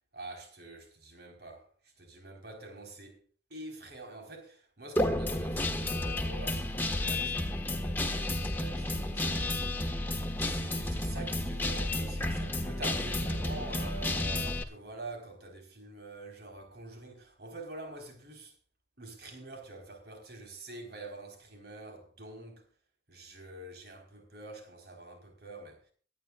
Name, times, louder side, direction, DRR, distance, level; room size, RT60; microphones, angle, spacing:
voice 1, 0.1-9.7 10.4-18.5 19.0-22.7 23.1-25.9, right 2 dB, 60° right, 4.2 m, -46 dB
Guitar, 5.0-14.6, left 1 dB, 10° left, 1.4 m, -32 dB
24.0 x 9.6 x 2.4 m
head